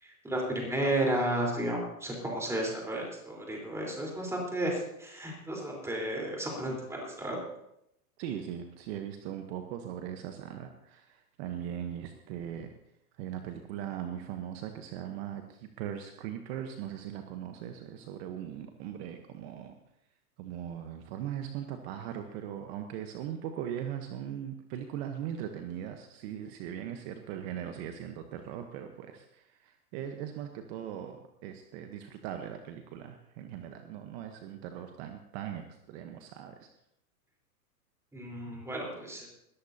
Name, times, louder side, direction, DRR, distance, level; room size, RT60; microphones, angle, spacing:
voice 1, 0.0-7.4 38.1-39.3, right 1 dB, 5° right, -2 dB, 4.0 m, -33 dB
voice 2, 8.2-12.7 13.2-19.8 20.4-36.7, right 10 dB, 45° right, 6 dB, 1.1 m, -39 dB
20.5 x 13.5 x 2.8 m, 0.78 s
hypercardioid pair, 140°, 46 cm